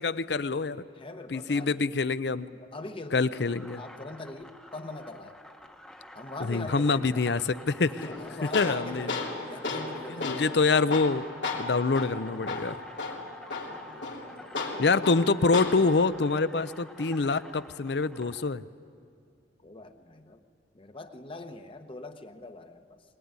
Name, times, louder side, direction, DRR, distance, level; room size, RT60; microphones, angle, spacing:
voice 1, 0.0-0.8 1.3-2.5 3.1-3.8 6.4-8.1 8.5-9.2 10.2-11.3 11.6-12.8 14.8-18.6, left 4 dB, 65° left, 15 dB, 0.6 m, -26 dB
voice 2, 1.0-1.9 2.5-3.4 3.7-5.4 6.1-7.3 7.8-10.3 13.7-14.1 14.4-14.9 19.6-20.4 20.7-23.0, left 2 dB, 30° left, 7 dB, 1.0 m, -42 dB
sound 1, 3.3-18.5, equal, 5° left, 1.0 m, -49 dB
Tools, 8.0-16.0, left 3 dB, 85° left, 2.9 m, -35 dB
21.5 x 20.5 x 9.6 m, 2.3 s
head